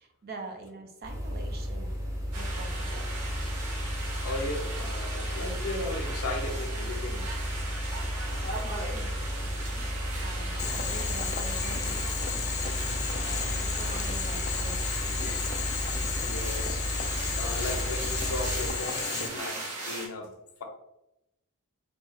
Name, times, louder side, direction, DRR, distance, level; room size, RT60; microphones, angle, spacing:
voice 1, 0.0-2.0 2.3-3.0 7.9-9.9 10.2-12.1 13.2-15.7, right 2 dB, 45° right, 4 dB, 0.5 m, -45 dB
sound 1, 1.0-18.7, equal, 15° right, 0.7 m, -33 dB
sound 2, 2.3-20.1, right 2 dB, 80° right, 1.0 m, -38 dB
voice 2, 4.2-7.3 12.7-13.1 16.2-16.8 17.1-20.3, left 2 dB, 70° left, 4 dB, 0.6 m, -37 dB
Boiling, 10.6-19.3, left 7 dB, 35° left, 0.3 m, -34 dB
2.9 x 2.3 x 4.1 m, 0.88 s
head